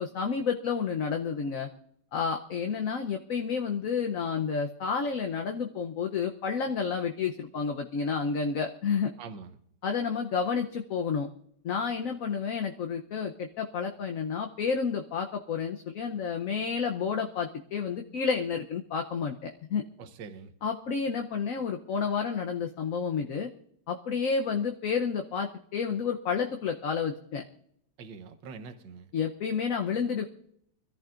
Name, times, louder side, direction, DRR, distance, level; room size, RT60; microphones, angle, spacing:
voice 1, 0.0-1.7 2.1-9.1 9.8-11.3 11.6-19.8 20.6-23.5 23.9-27.4 29.1-30.3, left 6 dB, 55° left, 4 dB, 1.1 m, -30 dB
voice 2, 9.2-9.6 20.0-20.5 28.0-29.1, right 5 dB, 75° right, 9 dB, 1.7 m, -44 dB
25.0 x 14.0 x 2.5 m, 0.72 s
omnidirectional pair, 2.0 m